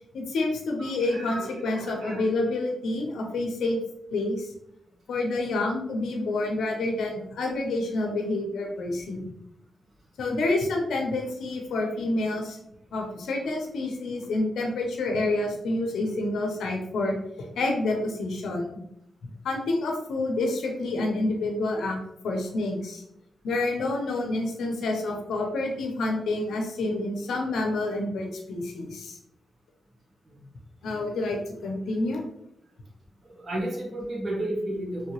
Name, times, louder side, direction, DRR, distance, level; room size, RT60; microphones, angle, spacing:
voice 1, 0.1-3.8 4.1-4.5 5.1-9.3 10.2-12.6 12.9-17.2 17.5-18.7 19.4-22.0 22.2-23.0 23.4-29.2 30.8-32.2, left 2 dB, 85° left, 2 dB, 0.6 m, -28 dB
voice 2, 0.8-2.2 30.3-30.4 33.2-35.1, right 1 dB, 55° right, -3 dB, 1.3 m, -33 dB
3.3 x 2.8 x 2.9 m, 0.77 s
cardioid pair, 65°, 0 cm